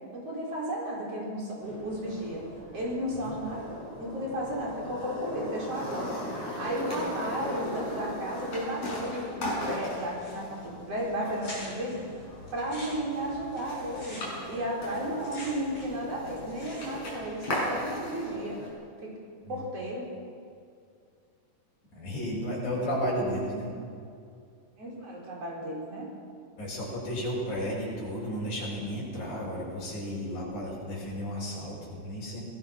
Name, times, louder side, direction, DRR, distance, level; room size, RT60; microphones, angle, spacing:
voice 1, 0.1-2.5 2.7-3.7 4.0-18.6 19.0-19.1 19.5-20.1 24.8-26.1, right 1 dB, 50° right, -3 dB, 5.7 m, -34 dB
sound 1, 1.6-18.7, left 1 dB, 50° left, 7.3 m, -38 dB
sound 2, 10.2-10.7 11.0-11.1 11.4-12.0 12.5-16.0 16.3-17.1, left 1 dB, 25° left, 8.4 m, -45 dB
voice 2, 21.9-23.7 26.6-32.4, equal, 75° left, -4 dB, 7.8 m, -33 dB
24.5 x 18.5 x 6.1 m, 2.4 s
omnidirectional pair, 3.5 m